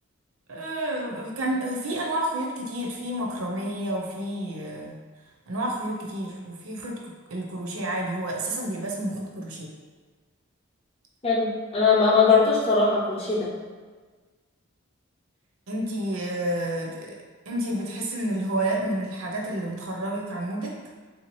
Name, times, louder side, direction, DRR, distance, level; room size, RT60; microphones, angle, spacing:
voice 1, 0.5-5.0 5.5-7.0 7.3-9.7 15.7-17.2 17.5-20.7, right 1 dB, 75° right, -1 dB, 0.6 m, -30 dB
voice 2, 11.2-13.5, left 4 dB, 25° left, -5 dB, 0.6 m, -20 dB
3.4 x 2.8 x 3.0 m, 1.4 s
head